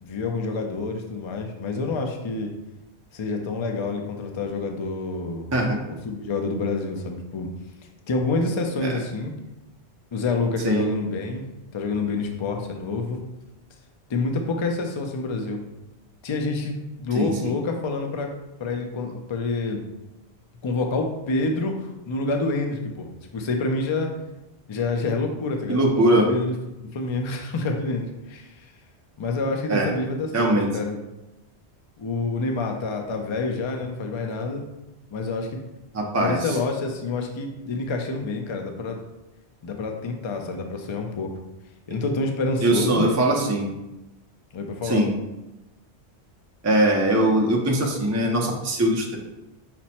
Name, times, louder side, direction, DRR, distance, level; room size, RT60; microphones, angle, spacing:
voice 1, 0.0-2.5 3.1-5.5 5.9-7.5 8.1-9.3 10.1-11.4 11.7-13.2 14.1-15.6 16.2-18.3 18.6-19.8 20.6-24.1 24.7-26.5 26.9-28.5 29.2-30.9 32.0-34.6 35.1-35.6 36.2-39.0 39.6-41.3 41.9-43.1 44.5-45.0, left 3 dB, 45° left, 3 dB, 0.4 m, -27 dB
voice 2, 17.1-17.5 25.7-26.3 29.7-29.9 30.3-30.7 35.9-36.4 42.6-43.7 44.8-45.1 46.6-49.2, right 1 dB, 25° right, -1 dB, 0.4 m, -21 dB
5.9 x 2.1 x 4.2 m, 0.96 s
omnidirectional pair, 1.2 m